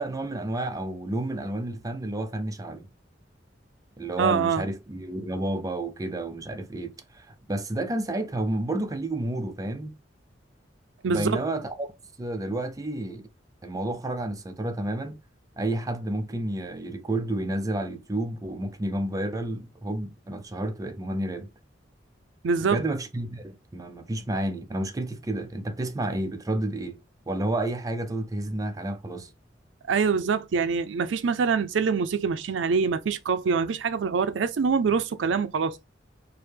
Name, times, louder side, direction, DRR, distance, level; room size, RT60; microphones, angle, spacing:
voice 1, 0.0-2.9 4.0-9.9 11.1-11.9 12.2-13.3 13.6-15.2 15.6-21.5 22.6-29.3, right 1 dB, 20° right, 0.4 m, -30 dB
voice 2, 4.2-4.6 11.0-11.4 22.4-22.8 29.9-35.9, right 5 dB, 75° right, 0.4 m, -25 dB
4.7 x 2.1 x 3.3 m
head